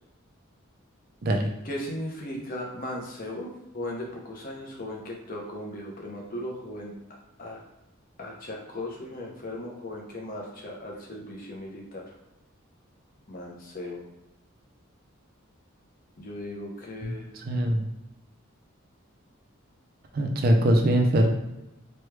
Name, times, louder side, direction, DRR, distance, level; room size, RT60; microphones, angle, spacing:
voice 1, 1.6-3.5 3.7-6.9 7.4-7.6 8.2-12.0 13.3-14.0 16.2-17.3, left 1 dB, 40° left, -1 dB, 0.7 m, -37 dB
voice 2, 17.0-17.9 20.1-21.3, right 1 dB, 45° right, 3 dB, 0.4 m, -23 dB
3.1 x 2.2 x 3.2 m, 0.94 s
head